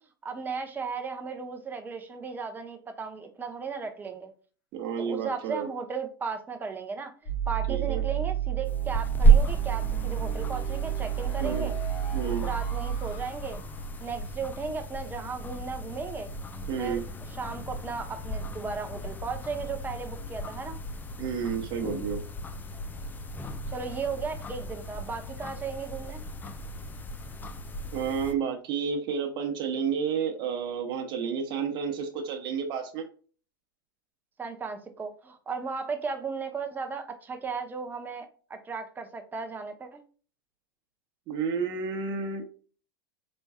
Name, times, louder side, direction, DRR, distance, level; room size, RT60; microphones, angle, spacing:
voice 1, 0.2-4.3 5.0-11.7 12.2-13.6 14.0-16.3 16.8-17.0 17.4-20.8 23.7-26.2 34.4-40.0, right 5 dB, 15° right, 0.8 m, -36 dB
voice 2, 4.7-5.7 7.7-8.0 11.4-11.7 12.1-12.5 16.7-17.0 21.2-22.2 27.9-33.1 41.3-42.4, right 6 dB, 40° right, 1.0 m, -31 dB
sound 1, 7.3-14.2, right 11 dB, 45° left, 1.1 m, -31 dB
sound 2, 8.7-28.3, right 3 dB, 15° left, 0.5 m, -31 dB
4.4 x 4.3 x 2.3 m
figure-of-eight pair, 90°, 12 cm